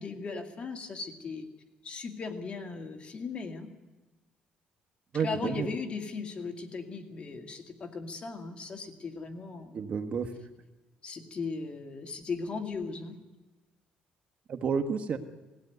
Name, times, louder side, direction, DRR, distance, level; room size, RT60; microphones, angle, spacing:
voice 1, 0.0-1.5 1.8-3.7 5.2-9.8 11.0-13.2, left 4 dB, 40° left, 5 dB, 2.3 m, -37 dB
voice 2, 5.1-5.7 9.7-10.3 14.5-15.2, right 6 dB, 50° right, 6 dB, 1.5 m, -30 dB
19.0 x 16.5 x 9.4 m, 1.1 s
cardioid pair, 115°, 3 cm